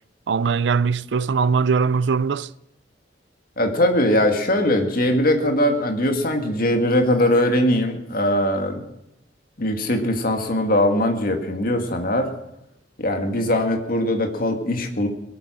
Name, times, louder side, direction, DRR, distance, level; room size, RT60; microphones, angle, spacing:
voice 1, 0.3-2.5, right 5 dB, 70° right, 0.4 m, -21 dB
voice 2, 3.6-8.8 9.6-12.3 13.0-15.1, left 1 dB, 55° left, 2.0 m, -21 dB
21.5 x 9.0 x 6.2 m
head